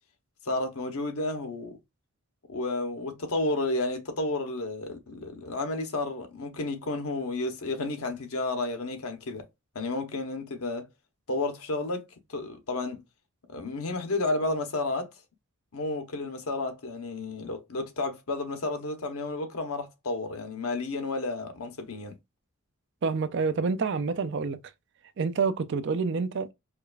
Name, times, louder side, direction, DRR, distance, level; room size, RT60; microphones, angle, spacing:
voice 1, 0.4-1.8 2.5-9.5 9.7-10.9 11.3-12.0 12.3-13.0 13.5-15.1 15.7-22.1, left 2 dB, 75° left, 0.9 m, -31 dB
voice 2, 23.0-24.6 25.2-26.5, right 4 dB, 55° right, 0.4 m, -27 dB
4.8 x 2.3 x 2.4 m
head